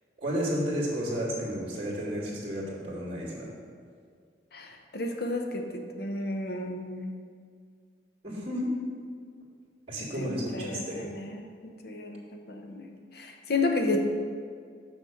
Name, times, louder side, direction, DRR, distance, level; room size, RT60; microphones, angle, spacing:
voice 1, 0.2-3.5 8.2-8.7 9.9-11.1, equal, 30° right, -5 dB, 2.3 m, -32 dB
voice 2, 4.5-7.1 10.1-11.4 11.8-14.0, left 2 dB, 60° left, 4 dB, 0.8 m, -32 dB
6.4 x 6.1 x 5.7 m, 2.1 s
head